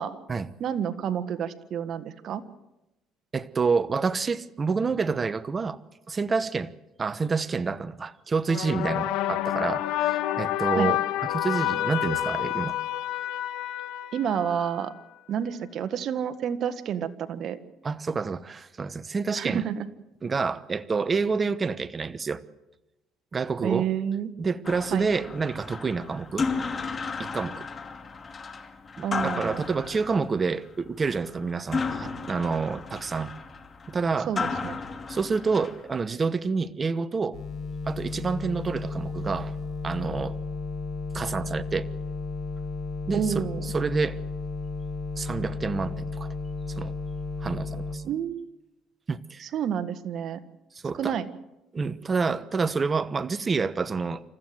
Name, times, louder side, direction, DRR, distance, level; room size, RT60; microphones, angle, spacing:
voice 1, 0.6-2.4 10.8-10.9 14.1-14.9 15.3-17.6 19.3-19.9 23.6-24.3 24.9-25.1 29.0-29.6 34.3-34.8 43.1-43.6 48.0-48.5 49.4-50.4 51.0-51.3, right 8 dB, 55° right, 11 dB, 1.6 m, -29 dB
voice 2, 3.3-5.8 6.1-6.7 7.0-11.0 11.3-12.8 17.8-19.6 20.2-22.4 23.3-23.9 24.4-26.5 27.2-27.7 29.0-33.3 33.9-34.3 35.1-37.4 37.9-39.5 39.8-40.4 41.1-41.9 43.1-44.2 45.2-46.3 46.8-46.9 47.4-48.0 49.1-49.5 50.8-51.1 51.7-54.2, right 4 dB, 30° right, 15 dB, 1.0 m, -28 dB
sound 1, 8.5-14.9, left 13 dB, 80° left, 1.7 m, -28 dB
sound 2, 24.6-36.0, left 4 dB, 30° left, 2.6 m, -34 dB
sound 3, 37.3-48.0, left 3 dB, 55° left, 5.5 m, -33 dB
28.0 x 14.5 x 7.9 m, 0.97 s
cardioid pair, 100°, 0 cm